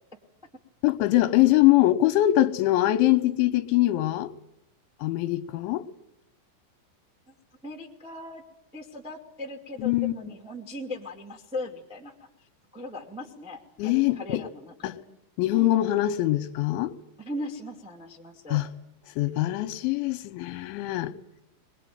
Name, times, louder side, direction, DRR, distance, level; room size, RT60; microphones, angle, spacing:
voice 1, 0.8-4.3 5.0-5.8 9.8-10.3 13.8-14.4 14.8-15.0 15.4-16.9 18.5-18.7 19.2-21.1, left 15 dB, 80° left, 3.4 m, -23 dB
voice 2, 7.6-8.4 8.7-12.1 12.7-15.0 17.2-18.7, left 1 dB, 5° right, 0.5 m, -38 dB
22.0 x 21.0 x 9.4 m
omnidirectional pair, 5.3 m